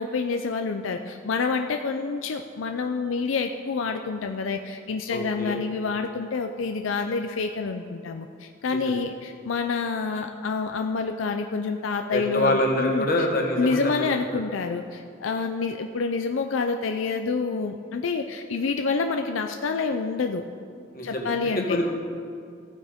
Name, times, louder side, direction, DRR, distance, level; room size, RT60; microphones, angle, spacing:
voice 1, 0.0-13.1 13.6-20.4 21.0-21.8, left 4 dB, 85° left, 6 dB, 0.5 m, -28 dB
voice 2, 5.1-5.6 8.7-8.8 12.1-14.0 20.9-21.3 21.7-21.9, left 1 dB, 50° left, 0 dB, 1.5 m, -25 dB
15.0 x 8.9 x 3.6 m, 2.4 s
head